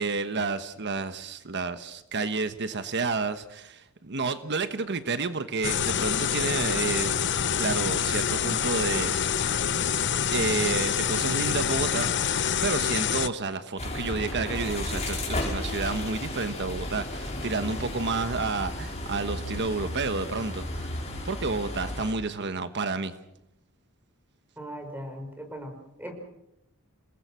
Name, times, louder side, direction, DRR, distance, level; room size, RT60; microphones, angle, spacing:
voice 1, 0.0-7.1 7.6-9.1 10.3-21.0 21.2-23.1, right 4 dB, 55° right, 10 dB, 1.2 m, -30 dB
sound 1, 5.6-13.3, left 7 dB, 55° left, 0.9 m, -26 dB
sound 2, 13.8-22.1, left 1 dB, 30° left, 5.5 m, -33 dB
voice 2, 24.6-26.1, equal, 10° right, 4 dB, 5.6 m, -39 dB
28.5 x 20.0 x 6.3 m, 0.83 s
head